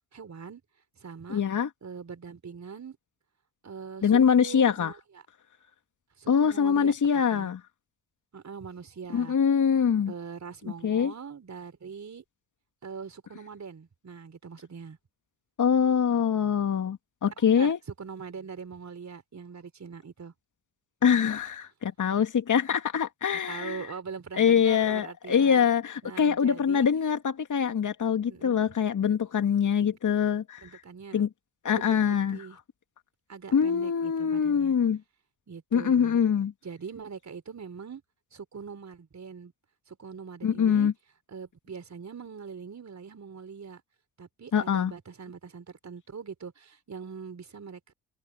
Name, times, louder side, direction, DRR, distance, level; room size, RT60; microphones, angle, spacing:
voice 1, 0.1-0.6 1.0-1.4 1.8-3.0 3.6-5.0 6.2-6.9 7.3-7.5 8.3-9.4 10.1-12.2 12.8-15.0 17.4-17.7 18.0-20.3 23.5-25.7 26.0-26.9 28.3-28.6 29.8-30.0 30.6-31.2 32.3-32.6 33.3-34.8 35.5-36.2 36.6-38.0 38.3-39.5 39.9-40.9 41.3-43.8 44.2-47.9, right 6 dB, 35° right, 4.5 m, -42 dB
voice 2, 1.3-1.7 4.0-4.9 6.3-7.6 9.1-10.1 10.8-11.1 15.6-17.8 21.0-23.9 24.4-30.8 31.1-31.3 31.6-32.4 33.5-35.0 35.7-36.5 40.4-40.9 44.5-44.9, left 7 dB, 40° left, 2.3 m, -24 dB
figure-of-eight pair, 45°, 47 cm